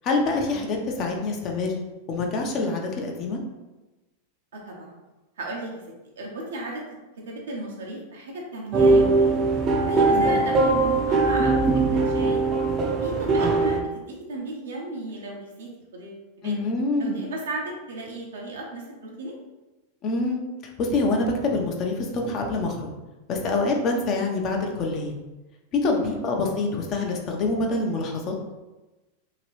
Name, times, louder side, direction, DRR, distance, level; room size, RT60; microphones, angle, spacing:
voice 1, 0.0-1.7 2.1-3.4 10.1-10.4 16.4-17.2 20.0-20.4 20.8-22.8 23.3-25.1 25.8-28.3, left 3 dB, 40° left, 2 dB, 0.7 m, -26 dB
voice 2, 4.5-5.0 5.4-5.8 6.2-6.8 7.3-9.4 9.8-12.4 13.0-16.6 17.0-19.3 25.9-26.2, right 2 dB, 85° right, -2 dB, 0.9 m, -35 dB
sound 1, 8.7-13.8, right 3 dB, 35° right, 0.5 m, -20 dB
2.9 x 2.9 x 3.0 m, 1.1 s
hypercardioid pair, 110°, 0 cm